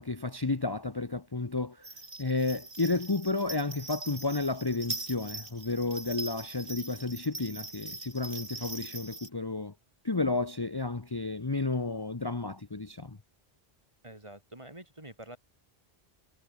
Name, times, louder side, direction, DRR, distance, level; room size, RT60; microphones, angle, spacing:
voice 1, 0.0-1.9 2.2-9.7 10.0-13.2, left 3 dB, 25° left, 1.1 m, -32 dB
sound 1, 1.8-9.3, right 2 dB, 75° right, 4.1 m, -42 dB
voice 2, 14.0-15.4, right 1 dB, 30° right, 3.7 m, -47 dB
omnidirectional pair, 1.1 m